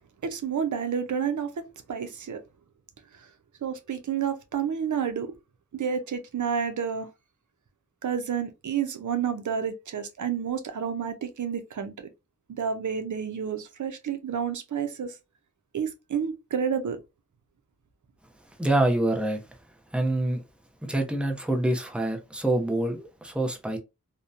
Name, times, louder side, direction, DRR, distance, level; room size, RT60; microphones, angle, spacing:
voice 1, 0.2-2.4 3.6-5.3 5.7-7.1 8.0-12.1 12.5-15.1 15.7-17.0, right 7 dB, 85° right, 0.5 m, -30 dB
voice 2, 18.6-19.4 19.9-20.4 20.8-23.8, right 1 dB, 5° right, 0.6 m, -26 dB
2.7 x 2.1 x 2.4 m
wide cardioid pair, 65°, 29 cm